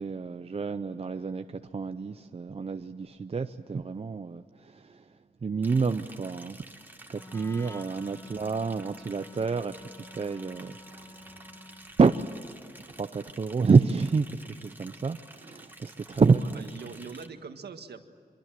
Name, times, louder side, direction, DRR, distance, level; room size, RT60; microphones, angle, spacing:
voice 1, 0.0-5.0 5.4-6.6 7.1-11.3 12.0-12.2 12.9-16.7, right 4 dB, 35° right, 0.6 m, -28 dB
Liquid, 5.6-17.3, right 1 dB, 10° right, 1.6 m, -51 dB
Wind instrument woodwind instrument, 7.1-12.0, left 2 dB, 15° left, 0.6 m, -49 dB
voice 2, 16.4-18.0, right 5 dB, 85° right, 1.7 m, -43 dB
26.0 x 23.5 x 7.6 m
wide cardioid pair, 120°, 17 cm